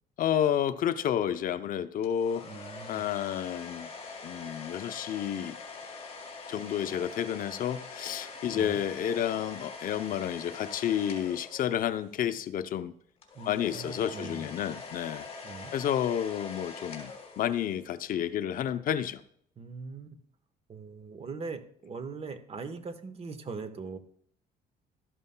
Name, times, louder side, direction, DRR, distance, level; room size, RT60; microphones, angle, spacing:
voice 1, 0.2-2.5 2.9-3.9 4.2-5.6 6.5-12.9 13.5-15.3 15.7-19.2, left 10 dB, 55° left, 12 dB, 0.5 m, -30 dB
sound 1, 2.0-12.2 13.2-17.9, left 4 dB, 40° left, 3.2 m, -44 dB
voice 2, 2.4-3.1 8.5-8.8 13.3-14.5 15.4-15.7 19.6-20.2 20.7-24.0, right 4 dB, 35° right, 10 dB, 1.1 m, -41 dB
13.0 x 11.0 x 2.2 m, 0.65 s
cardioid pair, 110°, 17 cm